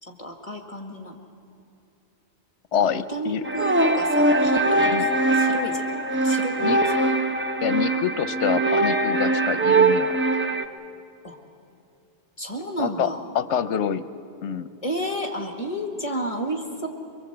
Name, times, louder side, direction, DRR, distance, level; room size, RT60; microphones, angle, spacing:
voice 1, 0.0-1.2 3.1-5.9 6.2-7.0 11.2-11.4 12.4-13.2 14.8-16.9, right 1 dB, 30° left, 3 dB, 1.8 m, -31 dB
voice 2, 2.7-3.4 4.9-5.1 6.6-6.8 7.6-10.2 12.8-14.0 14.4-14.7, left 8 dB, 80° left, 13 dB, 1.0 m, -26 dB
sound 1, 3.4-10.7, right 2 dB, 10° right, 0.7 m, -21 dB
24.5 x 22.5 x 7.9 m, 2.7 s
omnidirectional pair, 1.2 m